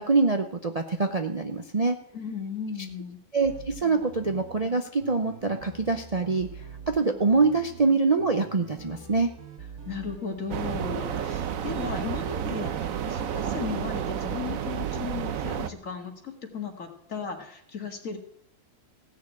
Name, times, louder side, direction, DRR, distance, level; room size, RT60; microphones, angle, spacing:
voice 1, 0.0-2.0 3.3-6.5 6.9-9.3, right 4 dB, 35° right, 5 dB, 0.6 m, -24 dB
voice 2, 2.1-3.2 9.9-18.2, left 6 dB, 55° left, 4 dB, 2.3 m, -36 dB
sound 1, 3.4-14.3, right 5 dB, 85° right, 2.1 m, -45 dB
sound 2, 10.5-15.7, right 9 dB, 65° right, 1.2 m, -31 dB
16.0 x 6.5 x 8.4 m, 0.66 s
omnidirectional pair, 1.6 m